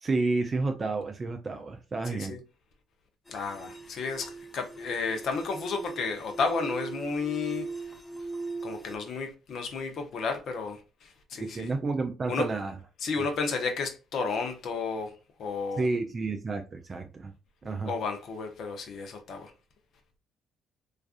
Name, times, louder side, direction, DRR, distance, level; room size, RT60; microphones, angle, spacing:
voice 1, 0.0-2.4 11.4-12.8 15.8-17.3 17.6-17.9, right 3 dB, 40° right, 0.4 m, -30 dB
voice 2, 2.1-2.4 3.3-7.9 8.6-11.7 12.3-12.5 13.0-15.1 15.4-15.8 17.6-19.5, left 4 dB, 60° left, 0.6 m, -32 dB
sound 1, 3.3-9.0, right 3 dB, 15° left, 0.6 m, -40 dB
2.4 x 2.3 x 2.4 m
hypercardioid pair, 50°, 0 cm